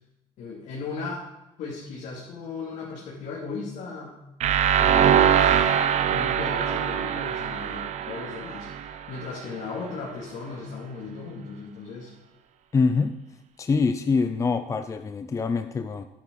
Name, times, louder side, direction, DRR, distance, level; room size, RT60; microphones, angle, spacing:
voice 1, 0.4-1.3 1.6-4.2 4.8-5.8 6.1-8.7 9.1-12.1, left 4 dB, 70° left, -5 dB, 2.9 m, -36 dB
sound 1, 4.4-9.3, right 9 dB, 60° right, 0.8 m, -23 dB
voice 2, 12.7-13.2 13.6-16.1, left 4 dB, 25° left, 9 dB, 0.5 m, -24 dB
10.5 x 10.0 x 4.1 m, 0.94 s
cardioid pair, 110°, 13 cm